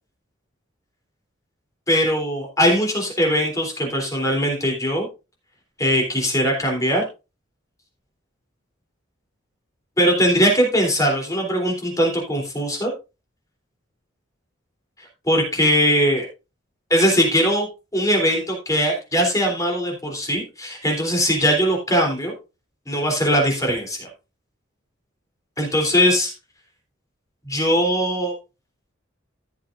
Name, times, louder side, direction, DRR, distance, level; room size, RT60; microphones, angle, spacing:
voice 1, 1.9-5.1 5.8-7.0 10.0-12.9 15.3-16.3 16.9-17.7 17.9-22.3 22.9-24.1 25.6-26.3 27.4-28.3, equal, 15° left, 1 dB, 3.3 m, -20 dB
15.0 x 7.3 x 2.5 m, 0.28 s
head